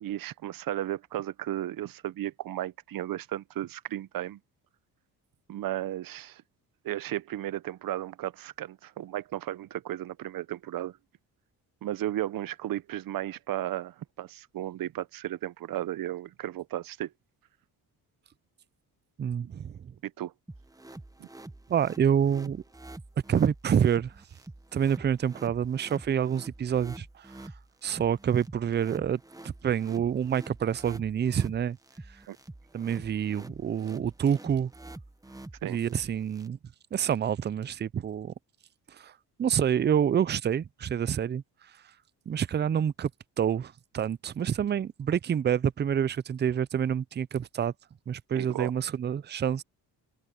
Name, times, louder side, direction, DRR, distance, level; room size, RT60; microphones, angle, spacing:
voice 1, 0.0-4.4 5.5-6.4 6.8-11.0 11.8-17.1 20.0-20.3 21.2-21.3 32.3-32.4 35.6-35.8 48.3-48.7, right 13 dB, 60° right, 0.8 m, -34 dB
voice 2, 19.2-19.9 21.7-22.6 23.3-24.1 24.7-27.3 27.8-31.8 32.7-34.7 35.6-36.6 36.9-38.3 39.0-39.1 39.4-41.4 42.3-43.1 43.4-47.7 48.1-49.6, right 8 dB, 25° right, 0.5 m, -27 dB
sound 1, 20.5-36.5, right 2 dB, 10° right, 1.3 m, -47 dB
cardioid pair, 80°, 39 cm